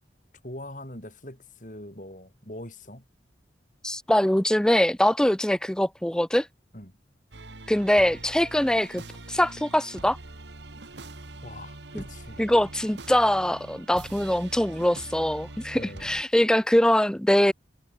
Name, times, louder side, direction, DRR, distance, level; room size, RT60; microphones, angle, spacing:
voice 1, 0.4-3.0 6.7-6.9 11.4-12.4 15.7-16.1, left 1 dB, 45° left, 7.5 m, -42 dB
voice 2, 3.8-6.5 7.7-9.0 9.3-10.2 11.9-12.0 12.4-17.5, left 1 dB, 5° left, 0.4 m, -23 dB
sound 1, 7.3-16.2, right 2 dB, 75° right, 2.2 m, -43 dB
head